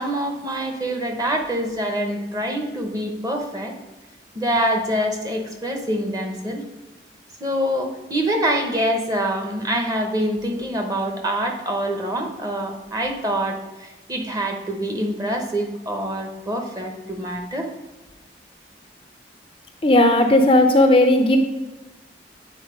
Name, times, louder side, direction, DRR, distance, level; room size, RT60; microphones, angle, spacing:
voice 1, 0.0-3.7 4.3-6.6 7.4-17.7, right 1 dB, 20° right, 3 dB, 0.9 m, -25 dB
voice 2, 19.8-21.4, left 1 dB, 30° left, 5 dB, 0.5 m, -15 dB
8.9 x 4.3 x 5.0 m, 1.1 s
head